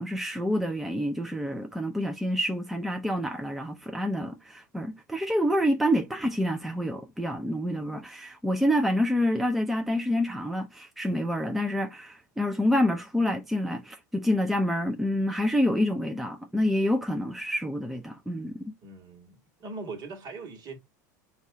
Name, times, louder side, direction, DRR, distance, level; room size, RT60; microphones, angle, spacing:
voice 1, 0.0-18.7, equal, ahead, 0.5 m, -27 dB
voice 2, 18.8-20.8, right 3 dB, 40° right, 1.5 m, -41 dB
4.0 x 2.5 x 4.6 m
hypercardioid pair, 95°, 10 cm